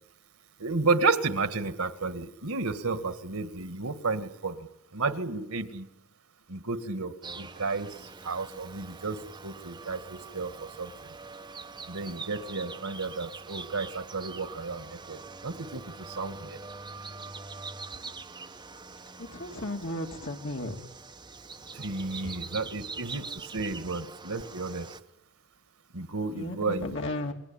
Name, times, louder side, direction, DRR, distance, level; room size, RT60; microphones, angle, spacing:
voice 1, 0.6-4.7 4.9-5.9 6.5-8.0 8.2-10.9 11.9-15.2 15.4-16.6 21.7-24.9 25.9-27.0, right 3 dB, 80° right, 11 dB, 1.9 m, -32 dB
sound 1, 7.2-25.0, right 4 dB, 20° right, 1.2 m, -44 dB
voice 2, 19.2-20.8 22.2-22.3 26.3-27.3, left 1 dB, 55° left, 2 dB, 3.0 m, -35 dB
28.5 x 21.0 x 8.9 m, 0.86 s
head